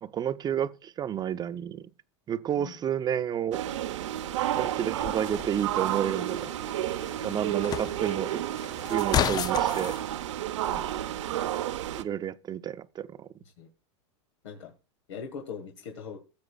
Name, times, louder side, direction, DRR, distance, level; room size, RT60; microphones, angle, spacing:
voice 1, 0.0-1.9 2.3-3.6 4.6-6.5 7.2-8.4 8.9-10.0 12.0-13.3, right 9 dB, 25° right, 0.7 m, -30 dB
sound 1, 3.5-12.0, right 12 dB, 85° right, 0.9 m, -31 dB
sound 2, 5.0-10.0, left 10 dB, 25° left, 0.4 m, -34 dB
voice 2, 7.2-7.6 8.8-9.0 10.7-10.9 13.6-13.7 14.4-14.7 15.1-16.2, left 6 dB, 85° left, 1.7 m, -41 dB
16.0 x 7.6 x 2.4 m
hypercardioid pair, 115°, 15 cm